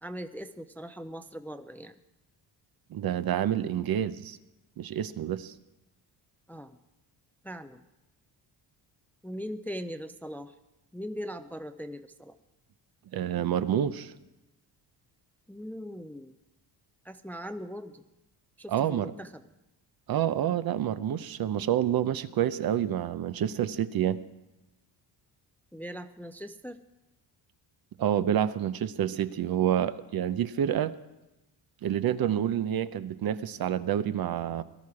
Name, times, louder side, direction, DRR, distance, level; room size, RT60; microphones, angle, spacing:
voice 1, 0.0-2.0 6.5-6.8 7.4-7.8 9.2-10.5 10.9-12.4 15.5-16.3 17.0-18.0 18.6-19.3 25.7-26.8 29.1-29.2, equal, 5° left, 9 dB, 0.4 m, -40 dB
voice 2, 2.9-4.4 4.8-5.5 13.1-14.1 18.7-19.1 20.1-24.2 28.0-30.9 31.8-34.6, right 10 dB, 55° right, 13 dB, 0.7 m, -28 dB
18.5 x 12.5 x 4.8 m, 0.94 s
cardioid pair, 120°, 43 cm